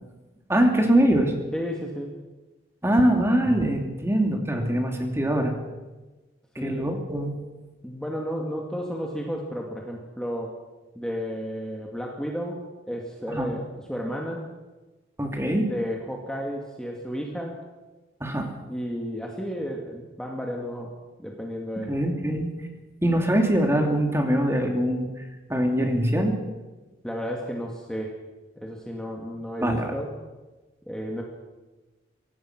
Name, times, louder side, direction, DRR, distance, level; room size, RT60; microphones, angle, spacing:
voice 1, 0.5-1.3 2.8-5.5 6.6-7.4 13.3-13.5 15.2-15.7 18.2-18.5 21.9-22.5 23.0-25.1 25.5-26.4 29.6-29.9, right 1 dB, 15° right, 3 dB, 2.7 m, -23 dB
voice 2, 1.5-2.1 6.6-6.9 7.8-10.6 10.9-14.5 15.7-17.6 18.7-22.0 27.0-28.2 28.6-30.1 30.9-31.2, equal, 5° left, -1 dB, 2.1 m, -32 dB
24.5 x 17.5 x 6.1 m, 1.2 s
head